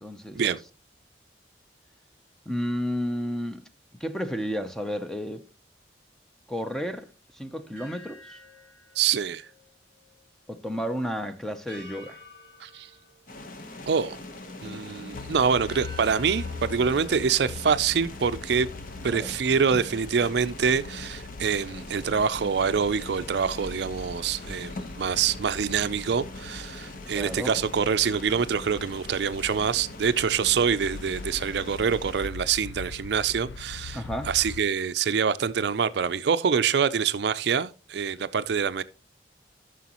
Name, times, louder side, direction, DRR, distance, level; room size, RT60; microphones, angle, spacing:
voice 1, 0.0-0.4 2.5-3.6 4.0-5.4 6.5-7.1 7.3-8.4 10.5-12.2 19.1-19.4 27.1-27.6 33.9-34.3, equal, 5° left, 0.6 m, -32 dB
sound 1, 7.8-10.2 10.5-10.7 11.7-14.2 14.6-15.1 15.7-18.5, equal, 25° left, 4.5 m, -50 dB
voice 2, 9.0-9.5 12.6-12.9 13.9-14.2 14.6-18.7 19.0-38.8, right 6 dB, 65° right, 0.4 m, -25 dB
sound 2, 13.3-32.3, left 2 dB, 45° left, 1.0 m, -42 dB
sound 3, 15.1-34.6, left 4 dB, 75° left, 0.4 m, -42 dB
13.5 x 6.2 x 2.9 m
head